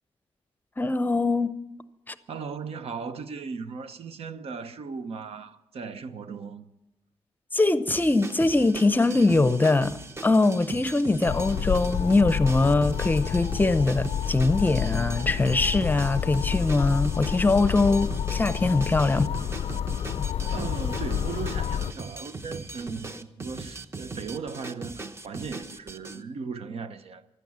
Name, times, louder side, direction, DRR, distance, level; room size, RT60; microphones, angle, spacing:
voice 1, 0.8-1.5 2.1-2.2 7.5-10.0 10.2-19.3, left 3 dB, 15° left, 0.7 m, -22 dB
voice 2, 2.3-6.6 20.5-27.4, right 5 dB, 70° right, 1.0 m, -37 dB
sound 1, 7.9-26.2, right 3 dB, 25° right, 1.0 m, -39 dB
sound 2, 11.3-21.9, left 9 dB, 65° left, 0.4 m, -29 dB
15.5 x 12.0 x 7.4 m
wide cardioid pair, 130°, 11 cm